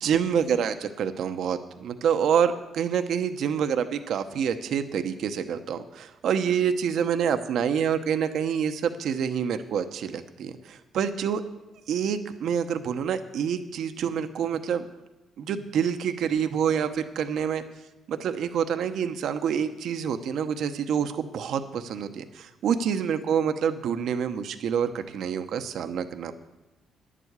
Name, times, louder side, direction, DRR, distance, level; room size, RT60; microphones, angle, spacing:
voice 1, 0.0-11.4 11.9-14.9 15.4-17.6 18.1-26.3, right 7 dB, 70° right, 8 dB, 0.8 m, -27 dB
11.0 x 7.6 x 8.1 m, 0.98 s
cardioid pair, 90°, 0 cm